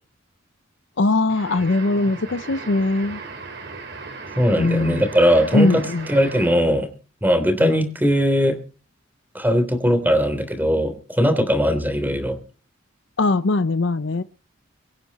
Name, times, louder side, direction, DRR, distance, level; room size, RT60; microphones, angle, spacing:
voice 1, 1.0-3.2 4.6-5.0 5.5-6.1 7.6-7.8 13.2-14.2, left 2 dB, 65° left, 13 dB, 0.7 m, -21 dB
sound 1, 1.3-6.8, right 4 dB, 60° right, 3.8 m, -37 dB
voice 2, 4.4-5.8 6.1-6.9 7.2-8.6 9.3-12.4, equal, 10° right, 9 dB, 3.3 m, -19 dB
24.0 x 9.6 x 4.2 m, 0.38 s
head